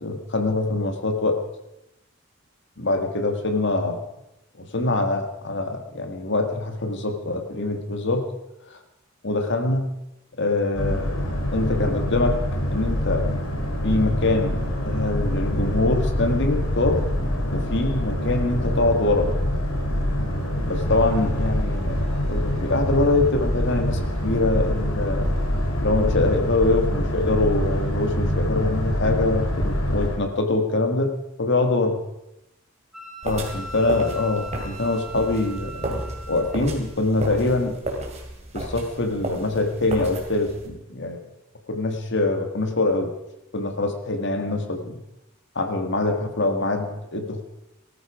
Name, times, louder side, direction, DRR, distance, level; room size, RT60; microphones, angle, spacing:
voice 1, 0.0-1.4 2.8-4.0 4.6-8.2 8.7-8.8 9.2-9.9 10.4-12.4 12.7-13.2 13.8-14.6 14.9-17.0 17.5-19.3 20.7-25.3 25.8-31.1 31.4-32.0 33.2-36.0 36.3-37.8 38.5-41.2 41.7-43.1 43.5-45.0 45.6-47.4, left 2 dB, 55° left, 6 dB, 1.8 m, -24 dB
Boat Water vehicle, 10.7-30.2, equal, 80° left, 3.5 m, -25 dB
Wind instrument woodwind instrument, 32.9-36.7, right 2 dB, ahead, 2.6 m, -40 dB
sound 1, 33.2-40.7, right 1 dB, 30° right, 2.9 m, -33 dB
19.0 x 14.0 x 5.0 m, 0.90 s
head